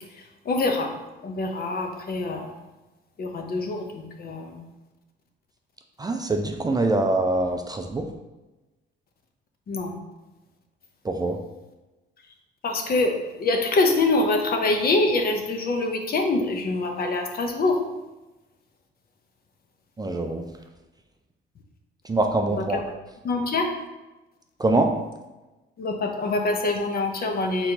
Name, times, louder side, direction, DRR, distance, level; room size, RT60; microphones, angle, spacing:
voice 1, 0.2-0.9 1.2-2.5 3.2-4.6 9.7-10.0 12.6-17.8 22.6-22.8 23.2-23.7 25.8-27.7, left 2 dB, 50° left, 3 dB, 0.7 m, -25 dB
voice 2, 6.0-8.1 11.0-11.4 20.0-20.4 22.0-22.8 24.6-24.9, right 2 dB, 20° right, 4 dB, 0.4 m, -24 dB
4.3 x 3.8 x 2.8 m, 1.1 s
cardioid pair, 90°, 20 cm